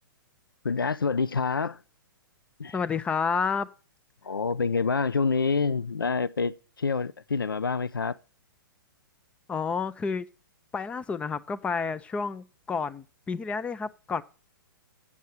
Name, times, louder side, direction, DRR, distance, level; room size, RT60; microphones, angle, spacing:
voice 1, 0.6-1.8 2.6-2.8 4.2-8.2, left 4 dB, 80° left, 0.4 m, -27 dB
voice 2, 2.7-3.7 9.5-10.3 10.7-14.2, left 5 dB, 10° left, 0.4 m, -30 dB
8.6 x 6.4 x 5.9 m
figure-of-eight pair, 115°, 11 cm